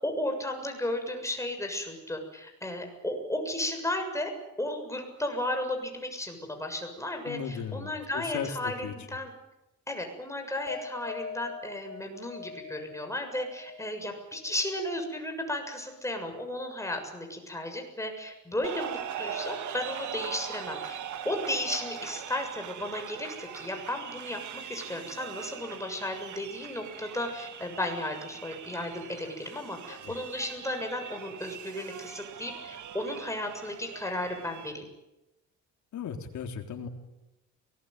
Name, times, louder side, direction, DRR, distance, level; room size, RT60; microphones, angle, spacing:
voice 1, 0.0-4.3 4.6-9.3 9.9-21.0 21.2-24.4 24.7-34.8, left 1 dB, 10° left, 4 dB, 7.0 m, -34 dB
voice 2, 7.2-8.9 29.9-30.1 35.9-36.9, left 7 dB, 70° left, 4 dB, 3.8 m, -36 dB
sound 1, 10.7-17.4 17.6-18.3, left 5 dB, 50° left, 6.7 m, -45 dB
sound 2, 18.6-34.7, right 9 dB, 75° right, 2.1 m, -41 dB
23.0 x 20.5 x 9.5 m, 0.97 s
cardioid pair, 90°, 30 cm